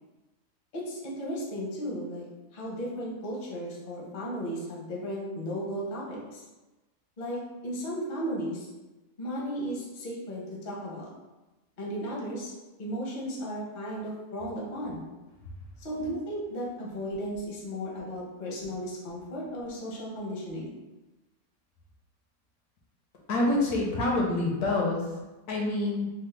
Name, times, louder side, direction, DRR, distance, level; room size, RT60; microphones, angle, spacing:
voice 1, 0.7-2.3 2.5-6.4 7.2-8.7 9.2-11.1 11.8-12.5 12.8-15.0 15.8-20.7, equal, 45° left, -4 dB, 0.6 m, -35 dB
voice 2, 23.3-25.1 25.5-26.1, left 2 dB, 75° left, -1 dB, 1.1 m, -26 dB
3.4 x 2.0 x 3.2 m, 1.1 s
omnidirectional pair, 1.7 m